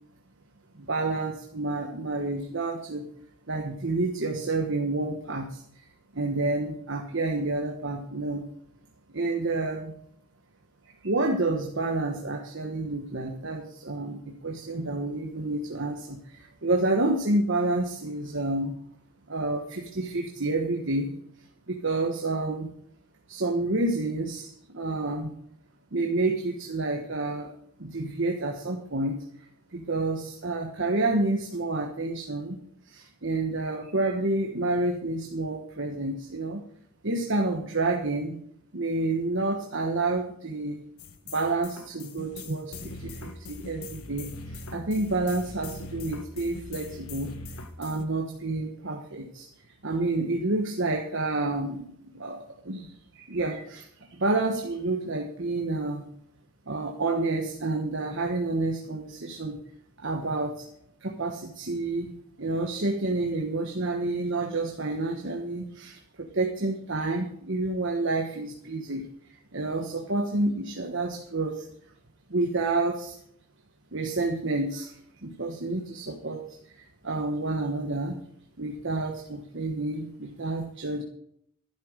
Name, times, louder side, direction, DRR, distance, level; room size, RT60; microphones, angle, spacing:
voice 1, 0.9-3.0 3.5-5.5 6.2-8.4 9.1-9.9 11.0-14.1 14.4-16.2 16.6-18.7 19.3-21.1 21.7-22.7 23.3-24.4 24.7-25.3 25.9-27.5 27.8-29.2 29.7-32.5 33.2-36.6 37.0-38.4 38.7-40.7 41.3-42.7 43.2-43.3 43.6-44.3 44.7-47.3 47.8-49.4 49.8-51.8 52.2-52.4 52.7-52.8 53.3-53.8 54.2-56.0 56.7-59.6 60.0-60.5 61.0-62.1 62.4-65.9 66.4-69.0 69.5-71.5 72.3-73.1 73.9-74.9 75.4-76.4 77.0-78.1 78.6-81.0, right 2 dB, 60° right, 2 dB, 1.3 m, -29 dB
sound 1, 41.0-48.0, left 3 dB, 85° left, 1.3 m, -41 dB
12.0 x 11.5 x 5.1 m, 0.69 s
head